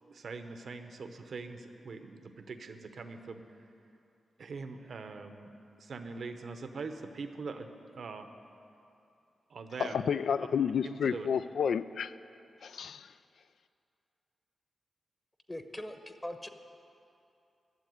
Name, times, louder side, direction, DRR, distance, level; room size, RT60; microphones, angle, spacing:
voice 1, 0.0-3.4 4.4-5.5 5.8-7.7 7.9-8.3 9.5-10.0 10.8-11.3, right 4 dB, 70° right, 0.9 m, -42 dB
voice 2, 9.8-12.1 12.6-13.1, left 7 dB, 80° left, 0.3 m, -30 dB
voice 3, 15.5-16.5, left 1 dB, 25° left, 1.0 m, -41 dB
12.5 x 7.3 x 9.3 m
supercardioid pair, 45°, 0 cm